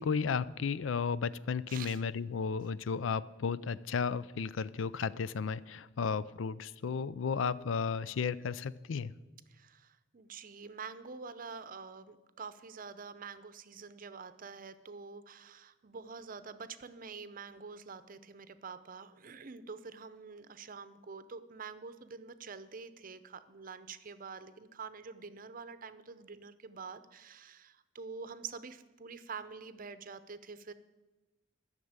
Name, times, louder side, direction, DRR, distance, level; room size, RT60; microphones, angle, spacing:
voice 1, 0.0-9.1, left 5 dB, 90° left, 18 dB, 0.4 m, -34 dB
voice 2, 1.7-2.0 9.5-30.7, right 5 dB, 45° right, 13 dB, 0.7 m, -47 dB
13.0 x 6.6 x 8.8 m, 1.1 s
head